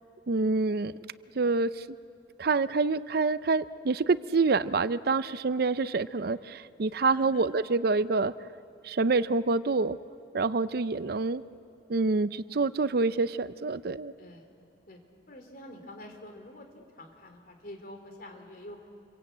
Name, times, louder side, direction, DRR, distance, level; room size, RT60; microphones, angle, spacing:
voice 1, 0.3-0.9 1.4-1.8 2.4-8.3 8.8-10.0 10.3-11.4 11.9-14.1, right 3 dB, 60° right, 15 dB, 0.6 m, -27 dB
voice 2, 14.2-14.5 14.9-15.0 15.3-18.9, left 1 dB, 55° left, 4 dB, 3.6 m, -47 dB
28.0 x 23.0 x 8.6 m, 2.5 s
head